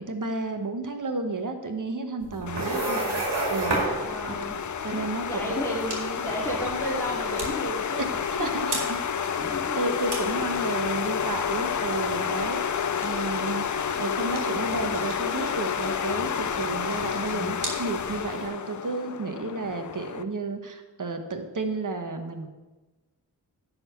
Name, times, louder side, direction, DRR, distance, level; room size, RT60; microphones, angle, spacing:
voice 1, 0.0-3.8 4.2-4.4 4.8-5.5 8.0-8.1 8.4-8.8 9.8-12.6 13.0-22.5, right 3 dB, 50° right, 6 dB, 1.3 m, -32 dB
sound 1, 2.2-18.5, right 2 dB, 85° right, 2.2 m, -35 dB
sound 2, 2.5-20.2, left 7 dB, 45° left, 0.6 m, -30 dB
voice 2, 2.7-3.2 4.0-4.6 5.3-8.6 9.5-9.8 10.4-10.5, equal, 5° left, -4 dB, 3.0 m, -33 dB
10.5 x 4.3 x 6.9 m, 1.2 s
cardioid pair, 40°, 40 cm